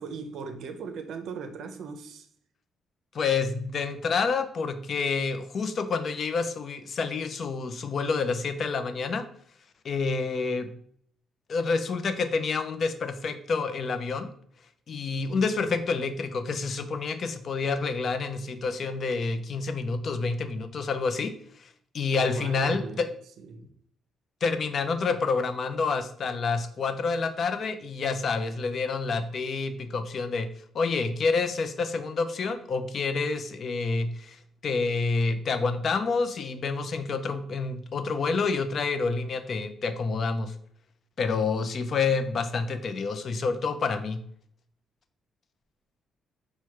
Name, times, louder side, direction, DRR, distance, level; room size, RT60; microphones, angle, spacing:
voice 1, 0.0-2.3 22.2-23.1 23.4-23.7, right 5 dB, 70° right, 0.5 m, -38 dB
voice 2, 3.1-9.3 9.8-10.7 11.5-14.3 14.9-21.3 21.6-21.7 21.9-23.1 24.4-30.5 30.7-34.4 34.6-40.5 41.2-44.2, left 4 dB, 50° left, 0.5 m, -28 dB
4.6 x 2.2 x 4.5 m
cardioid pair, 90°, 0 cm